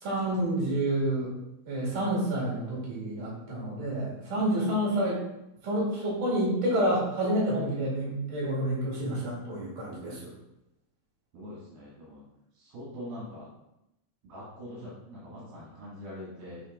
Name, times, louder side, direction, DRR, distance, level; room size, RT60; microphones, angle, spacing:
voice 1, 0.0-1.3 1.7-5.2 5.6-10.2, right 1 dB, 65° right, -5 dB, 3.8 m, -29 dB
voice 2, 11.3-12.2 12.6-13.5 14.2-16.6, left 1 dB, 80° right, -7 dB, 3.5 m, -43 dB
9.4 x 3.5 x 3.7 m, 0.87 s
omnidirectional pair, 4.1 m